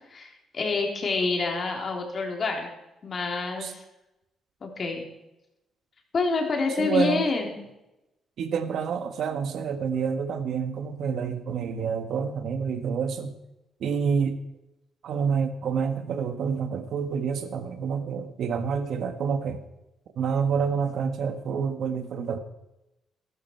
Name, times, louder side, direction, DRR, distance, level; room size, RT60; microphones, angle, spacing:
voice 1, 0.1-2.7 3.0-3.8 4.6-5.1 6.1-7.6, left 4 dB, 45° left, 2 dB, 3.5 m, -27 dB
voice 2, 6.8-7.3 8.4-13.3 13.8-14.4 15.0-19.6 20.2-22.4, right 6 dB, 70° right, 9 dB, 1.5 m, -28 dB
13.5 x 13.0 x 4.6 m, 0.92 s
cardioid pair, 90°, 0 cm